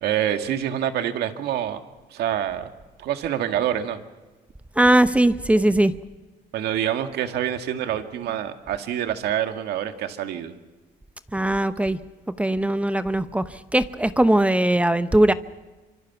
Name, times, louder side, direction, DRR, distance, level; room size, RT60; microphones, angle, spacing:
voice 1, 0.0-1.8 2.1-2.7 3.0-4.0 6.5-10.5, right 10 dB, 75° right, 7 dB, 1.9 m, -26 dB
voice 2, 4.8-5.9 11.3-12.0 12.4-15.3, right 1 dB, 10° right, 12 dB, 0.9 m, -20 dB
25.5 x 25.5 x 6.0 m, 1.2 s
cardioid pair, 110°, 17 cm